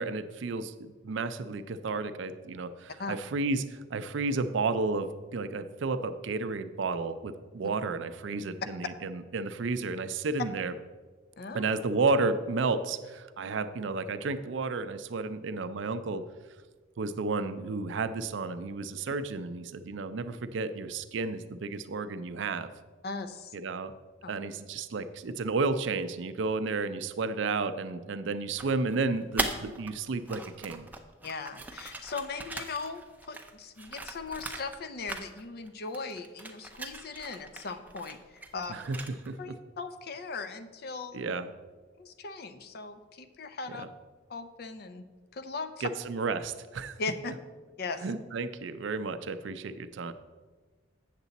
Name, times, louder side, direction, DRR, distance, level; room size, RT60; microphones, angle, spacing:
voice 1, 0.0-10.7 11.5-16.2 17.0-22.7 23.5-23.9 24.3-30.9 38.7-39.0 39.3-39.5 41.1-41.5 43.8-43.9 45.8-47.0 48.0-50.1, right 3 dB, 70° right, 11 dB, 0.4 m, -32 dB
voice 2, 23.0-23.5 24.2-24.3 31.2-38.7 39.4-41.2 42.0-43.8 44.3-45.1 45.3-45.9 47.0-47.3 47.8-48.1, left 4 dB, 50° left, 9 dB, 0.5 m, -38 dB
sound 1, 28.6-29.9 30.2-34.8 35.1-35.7 35.9-39.4, right 2 dB, 10° right, 0.4 m, -39 dB
8.1 x 6.7 x 4.0 m, 1.4 s
head